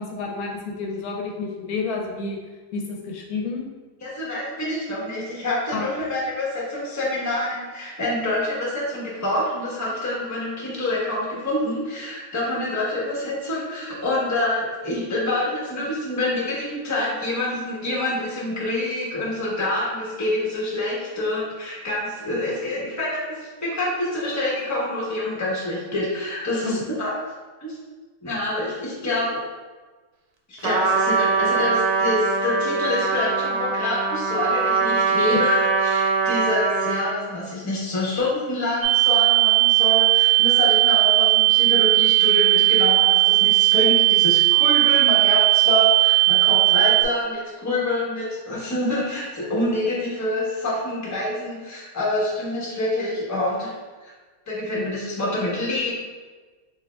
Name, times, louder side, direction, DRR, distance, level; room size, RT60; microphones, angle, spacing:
voice 1, 0.0-2.4 2.7-3.6 5.7-5.8 26.6-26.8, left 4 dB, 75° left, 1 dB, 1.0 m, -30 dB
voice 2, 4.0-27.1 27.6-27.8 28.2-29.4 30.5-53.7 54.0-54.1 54.5-56.0, left 1 dB, 15° left, -6 dB, 0.8 m, -26 dB
Trumpet, 30.6-37.2, right 4 dB, 80° right, 1.1 m, -22 dB
sound 1, 38.8-47.0, right 22 dB, 65° right, 0.7 m, -17 dB
6.3 x 2.7 x 2.2 m, 1.3 s
omnidirectional pair, 1.6 m